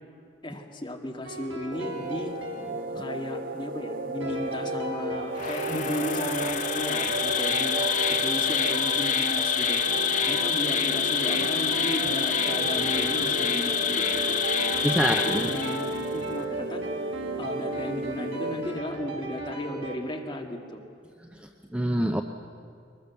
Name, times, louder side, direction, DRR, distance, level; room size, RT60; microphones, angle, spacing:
voice 1, 0.4-2.3 3.0-7.8 8.1-14.1 15.0-16.9 17.4-20.8, equal, 25° left, 1 dB, 1.9 m, -35 dB
sound 1, 1.2-3.5 4.2-20.0, right 2 dB, 90° right, 4.1 m, -37 dB
sound 2, 1.7-18.8, right 2 dB, 45° right, 0.7 m, -34 dB
Insect, 5.3-16.1, left 7 dB, 40° left, 0.9 m, -27 dB
voice 2, 14.8-15.5 21.3-22.2, equal, 5° right, 5 dB, 0.6 m, -26 dB
22.5 x 20.5 x 7.0 m, 2.3 s
head